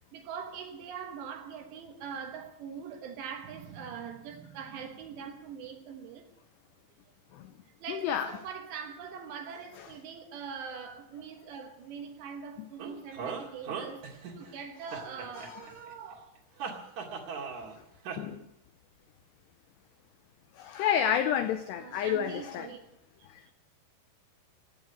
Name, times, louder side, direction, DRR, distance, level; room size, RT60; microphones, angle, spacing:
voice 1, 0.1-6.3 7.8-16.4 21.8-22.8 23.5-23.6, right 7 dB, 70° right, 3.0 m, -42 dB
voice 2, 7.9-8.3 15.5-15.6 18.2-18.4 20.6-22.7, left 9 dB, 85° left, 2.4 m, -29 dB
sound 1, 12.8-14.5 14.9-15.9 16.6-17.8 18.0-18.2, right 6 dB, 50° right, 2.6 m, -38 dB
17.5 x 8.9 x 9.2 m
omnidirectional pair, 5.9 m